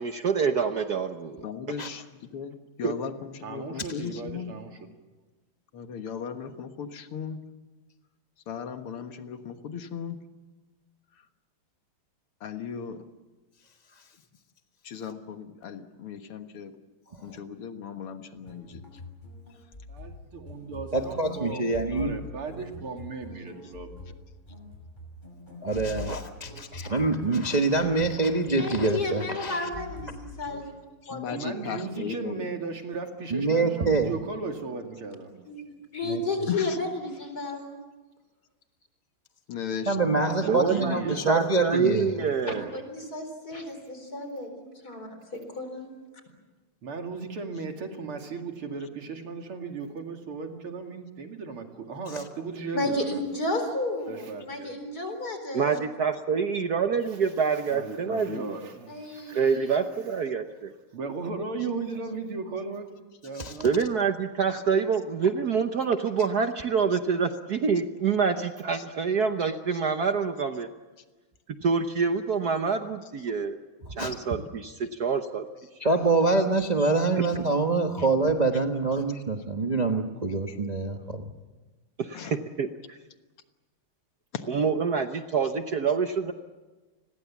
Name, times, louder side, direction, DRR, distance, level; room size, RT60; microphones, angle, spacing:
voice 1, 0.0-1.4 2.8-2.9 40.4-42.7 55.5-58.6 59.3-60.7 63.6-70.7 71.6-73.6 73.9-75.5 82.0-83.0 84.5-86.3, right 5 dB, 55° right, 7 dB, 1.3 m, -26 dB
voice 2, 1.4-4.5 5.7-7.4 8.5-10.2 11.1-11.3 12.4-13.0 14.8-16.7 17.2-19.0 19.5-19.7 23.6-23.7 31.0-32.5 36.5-36.8 39.5-40.1 40.7-40.8 48.8-48.9 58.1-58.5 64.5-64.6 66.9-67.0 68.7-68.9 69.7-69.8 74.0-74.1 78.0-78.1 78.5-78.6 82.1-82.4 84.3-84.4, left 7 dB, 85° left, 7 dB, 2.4 m, -37 dB
voice 3, 3.4-4.7 19.9-21.6 21.9-24.1 31.3-35.3 40.0-41.2 46.8-53.2 54.1-54.7 57.7-59.4 60.9-62.9 63.2-63.7, right 4 dB, 80° right, 4 dB, 3.3 m, -36 dB
sound 1, 18.3-30.7, left 2 dB, 20° left, 5.8 m, -44 dB
voice 4, 20.9-22.2 25.6-29.7 33.3-34.1 36.1-36.2 39.9-42.2 52.1-52.2 63.3-63.7 74.0-74.1 75.8-81.3, right 3 dB, 25° right, 3 dB, 1.1 m, -25 dB
voice 5, 28.5-30.7 31.1-31.3 35.4-37.8 42.5-45.9 52.7-55.8 58.9-59.8, left 2 dB, 45° left, 6 dB, 4.8 m, -33 dB
29.5 x 21.5 x 7.2 m, 1.2 s
omnidirectional pair, 2.4 m